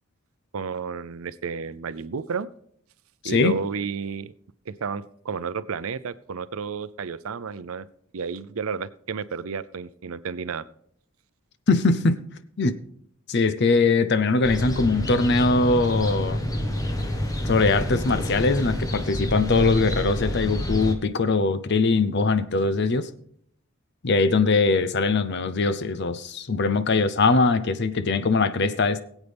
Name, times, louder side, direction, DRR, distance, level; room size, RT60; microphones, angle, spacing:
voice 1, 0.5-2.5 3.2-4.3 4.7-7.9 8.1-10.6, right 5 dB, 80° right, 0.5 m, -31 dB
voice 2, 3.2-3.6 11.7-12.3 12.6-12.8 13.3-16.4 17.4-23.1 24.0-29.0, left 3 dB, 55° left, 0.6 m, -21 dB
sound 1, 14.4-20.9, equal, 15° left, 1.1 m, -28 dB
21.5 x 8.2 x 3.5 m
head